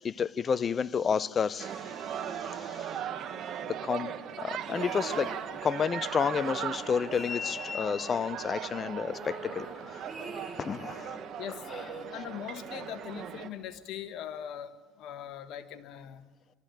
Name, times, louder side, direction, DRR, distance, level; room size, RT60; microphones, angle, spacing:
voice 1, 0.0-1.8 2.4-2.9 3.7-5.3 5.6-10.0 10.6-11.2 11.7-11.8, left 6 dB, 35° left, 0.6 m, -31 dB
sound 1, 1.6-13.5, right 9 dB, 55° right, 1.7 m, -38 dB
sound 2, 4.6-5.9 6.2-8.1 8.4-8.5 8.8-11.2 11.6-12.9 13.7-13.8, right 2 dB, 20° right, 6.1 m, -46 dB
voice 2, 12.1-14.7 15.0-16.3, left 10 dB, 65° left, 1.4 m, -41 dB
24.5 x 13.5 x 9.1 m
supercardioid pair, 90°, 0 cm